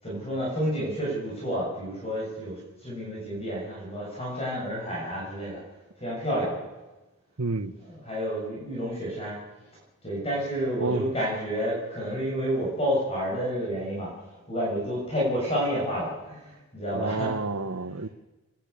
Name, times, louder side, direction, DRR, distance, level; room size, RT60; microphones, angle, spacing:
voice 1, 0.0-5.6 6.0-6.6 7.8-9.4 10.0-14.1 14.5-17.3, equal, 25° left, 7.0 m, -30 dB
voice 2, 7.4-7.7 10.8-11.1 16.9-18.1, right 3 dB, 80° right, 1.1 m, -30 dB
27.5 x 12.0 x 8.4 m
head